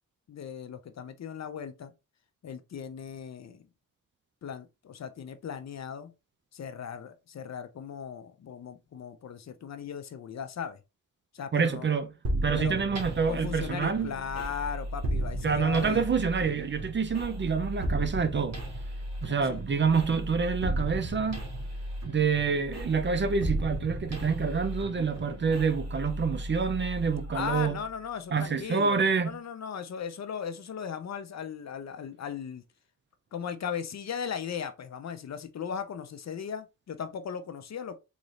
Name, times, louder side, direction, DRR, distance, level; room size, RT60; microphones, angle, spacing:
voice 1, 0.3-1.9 2.4-3.7 4.4-6.1 6.5-10.8 11.3-11.9 12.6-12.8 13.3-16.0 19.3-19.6 27.3-32.6 33.3-38.0, left 7 dB, 50° left, 0.6 m, -37 dB
voice 2, 11.5-12.1 12.4-14.1 15.4-18.6 19.2-21.4 22.1-27.8 28.3-29.4, right 5 dB, 35° right, 0.5 m, -27 dB
sound 1, 12.2-27.9, right 1 dB, 50° right, 1.5 m, -35 dB
4.0 x 2.6 x 3.1 m
cardioid pair, 95°, 34 cm